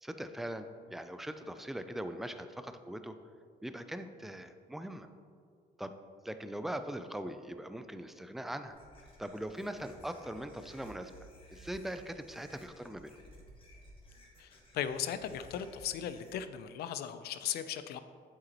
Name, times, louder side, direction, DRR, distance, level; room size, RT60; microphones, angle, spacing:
voice 1, 0.0-3.1 3.6-5.1 5.8-5.9 6.2-8.8 9.2-11.1 11.5-13.1, right 1 dB, ahead, 9 dB, 0.4 m, -41 dB
sound 1, 8.7-16.3, equal, 30° left, 1.5 m, -57 dB
voice 2, 14.4-18.0, left 9 dB, 70° left, 11 dB, 0.5 m, -37 dB
8.0 x 7.8 x 3.0 m, 2.2 s
cardioid pair, 110°, 17 cm